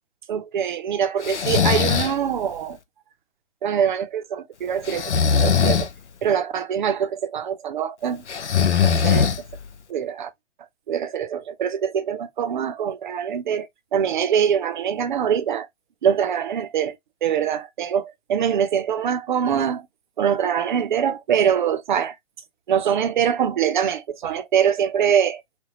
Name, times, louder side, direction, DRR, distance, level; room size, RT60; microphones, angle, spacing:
voice 1, 0.3-2.8 3.6-5.9 6.2-8.2 8.8-9.3 9.9-10.3 10.9-15.7 16.0-19.9 20.2-22.2 22.7-25.4, right 8 dB, 45° right, 0.6 m, -23 dB
Breathing, 1.2-2.2 4.9-5.9 8.3-9.7, left 7 dB, 80° left, 0.6 m, -20 dB
3.4 x 2.2 x 2.6 m
figure-of-eight pair, 125°, 34 cm